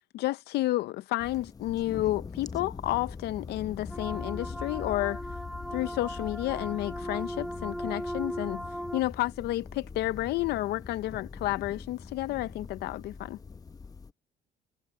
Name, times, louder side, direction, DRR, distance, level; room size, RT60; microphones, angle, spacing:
voice 1, 0.1-5.2 5.7-8.6 8.9-13.4, left 16 dB, 75° left, 0.5 m, -31 dB
sound 1, 1.2-14.1, left 5 dB, 20° left, 0.7 m, -42 dB
sound 2, 3.9-9.0, equal, ahead, 3.2 m, -37 dB
cardioid pair, 110°, 17 cm